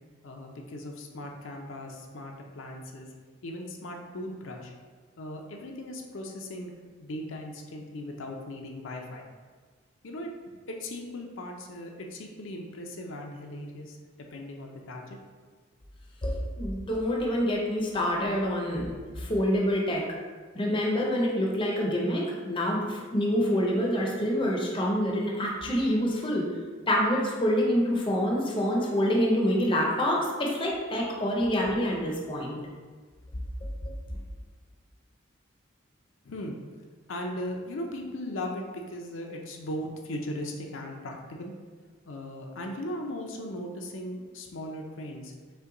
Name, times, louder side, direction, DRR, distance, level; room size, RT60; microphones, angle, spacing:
voice 1, 0.2-3.1 3.4-4.7 5.2-6.7 7.0-9.3 10.0-10.3 10.7-14.0 14.3-15.2 36.2-36.6 37.1-41.5 42.1-45.3, left 1 dB, 70° left, 1 dB, 0.5 m, -38 dB
voice 2, 16.2-20.0 20.5-26.4 26.9-32.6, equal, 25° left, -2 dB, 0.6 m, -26 dB
5.5 x 2.2 x 3.7 m, 1.5 s
head